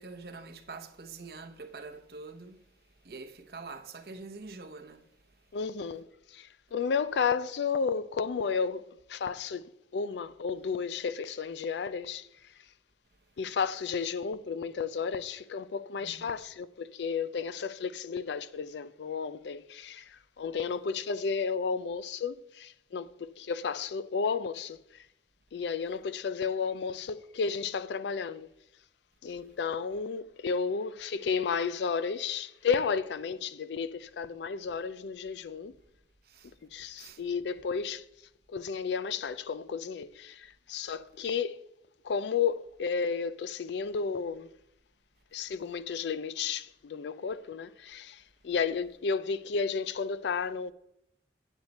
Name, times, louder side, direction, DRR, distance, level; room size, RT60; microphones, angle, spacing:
voice 1, 0.0-2.6 3.0-5.1 16.0-16.4 36.2-36.5 37.0-37.2, right 3 dB, 60° right, 0.8 m, -45 dB
voice 2, 5.5-12.3 13.4-25.0 25.5-28.5 29.2-35.7 36.7-38.1 38.5-41.6 42.0-44.5 45.3-50.7, left 5 dB, 80° left, 0.4 m, -33 dB
8.2 x 7.9 x 4.1 m
head